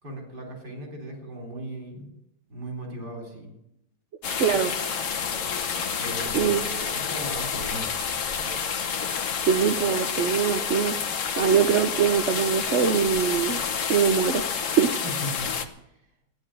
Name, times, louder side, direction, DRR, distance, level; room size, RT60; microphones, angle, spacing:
voice 1, 0.0-2.1 2.5-3.5 6.0-8.6 15.0-16.0, right 1 dB, 75° right, 1 dB, 4.4 m, -38 dB
sound 1, 4.2-15.7, left 6 dB, 50° left, 1.3 m, -29 dB
voice 2, 4.4-4.7 6.3-6.7 9.4-10.9 11.4-13.6 13.9-14.9, right 7 dB, 55° right, 8 dB, 0.8 m, -23 dB
14.0 x 9.8 x 8.8 m, 0.84 s
omnidirectional pair, 1.8 m